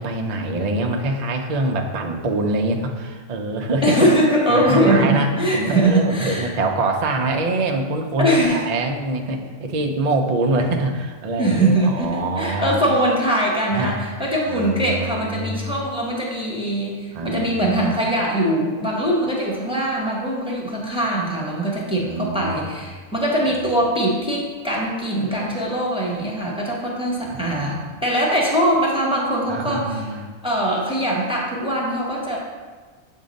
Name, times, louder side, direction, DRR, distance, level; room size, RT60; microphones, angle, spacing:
voice 1, 0.0-4.0 4.5-12.9 13.7-14.0 14.5-15.7 17.1-17.7 22.0-22.7 27.2-27.6 29.5-30.3, right 2 dB, 75° right, 3 dB, 0.3 m, -24 dB
voice 2, 3.8-6.5 8.2-8.6 11.4-30.1 30.4-32.4, right 1 dB, 5° right, -4 dB, 0.7 m, -21 dB
7.3 x 2.7 x 5.1 m, 1.4 s
omnidirectional pair, 1.5 m